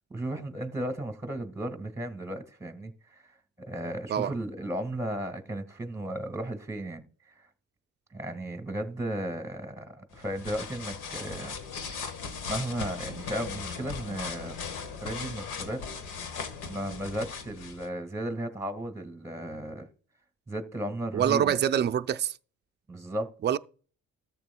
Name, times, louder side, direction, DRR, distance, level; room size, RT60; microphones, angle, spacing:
voice 1, 0.1-3.2 3.6-7.0 8.1-11.6 11.9-12.0 12.5-14.6 15.0-15.8 16.6-19.9 20.5-21.5 22.9-23.3, right 1 dB, 10° right, 1.6 m, -35 dB
sound 1, 10.1-17.9, left 5 dB, 90° left, 1.3 m, -38 dB
voice 2, 21.1-22.4 23.4-23.6, right 9 dB, 35° right, 0.4 m, -25 dB
13.5 x 7.5 x 2.2 m
cardioid pair, 90°, 30 cm